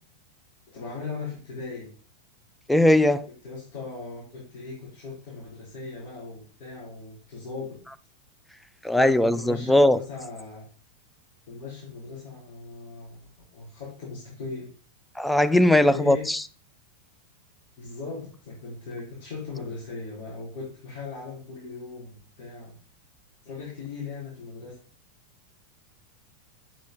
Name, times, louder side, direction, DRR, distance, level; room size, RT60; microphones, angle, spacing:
voice 1, 0.7-1.9 3.4-7.7 9.0-10.6 11.5-13.2 13.5-14.7 15.8-16.2 17.8-22.7 23.4-24.7, left 4 dB, 45° left, 4.4 m, -38 dB
voice 2, 2.7-3.3 8.8-10.0 15.2-16.4, left 1 dB, 5° left, 0.4 m, -19 dB
8.4 x 6.1 x 3.8 m
figure-of-eight pair, 90°, 0 cm